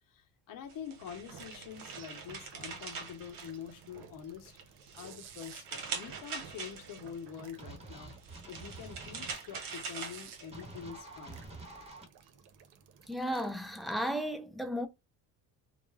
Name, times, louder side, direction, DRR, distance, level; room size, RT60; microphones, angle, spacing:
voice 1, 0.0-4.6 4.9-8.1 8.5-11.5, left 8 dB, 60° left, 0.9 m, -46 dB
sound 1, 0.7-4.1 4.5-7.2 8.1-10.8, right 5 dB, 65° right, 0.9 m, -43 dB
sound 2, 1.1-14.0, right 7 dB, 90° right, 0.6 m, -55 dB
sound 3, 7.6-9.3 10.5-12.0, right 2 dB, 15° right, 1.0 m, -48 dB
voice 2, 13.1-14.9, equal, ahead, 0.3 m, -34 dB
2.2 x 2.0 x 3.2 m
cardioid pair, 105°, 37 cm